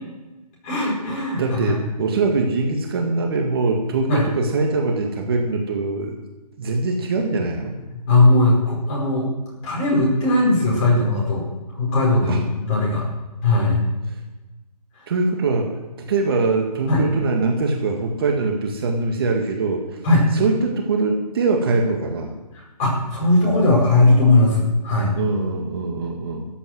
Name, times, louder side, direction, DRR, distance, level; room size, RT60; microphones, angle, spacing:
voice 1, 0.6-1.7 4.1-4.2 7.9-9.3 9.6-11.4 11.8-13.0 13.4-13.8 16.9-17.0 20.0-20.2 22.5-25.1, left 2 dB, 20° left, -4 dB, 5.0 m, -18 dB
voice 2, 1.4-6.2 6.6-7.7 12.3-12.4 15.1-15.7 16.0-19.8 20.3-22.3 25.2-26.5, right 3 dB, 35° right, 2 dB, 1.9 m, -22 dB
13.0 x 8.9 x 7.9 m, 1.1 s
hypercardioid pair, 160°, 20 cm